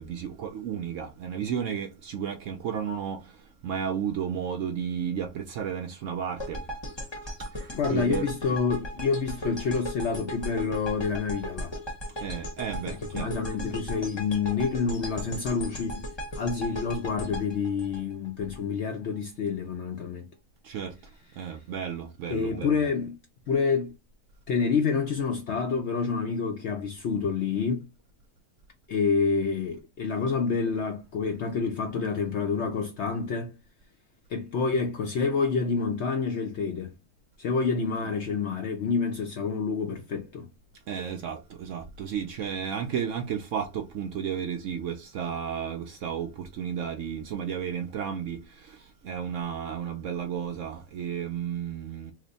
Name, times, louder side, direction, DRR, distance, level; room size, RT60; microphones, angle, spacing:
voice 1, 0.0-3.4 3.6-6.6 7.5-8.2 12.2-13.3 20.6-21.0 21.4-22.8 38.0-38.1 40.9-52.1, right 8 dB, 70° right, 0.8 m, -33 dB
sound 1, 6.4-18.6, equal, 25° left, 0.6 m, -37 dB
voice 2, 7.7-11.7 12.9-16.1 16.4-20.3 22.3-23.2 23.5-23.9 24.5-27.9 28.9-33.6 34.3-37.0 37.4-40.5, left 5 dB, 65° left, 0.7 m, -28 dB
3.0 x 2.1 x 3.9 m
omnidirectional pair, 1.7 m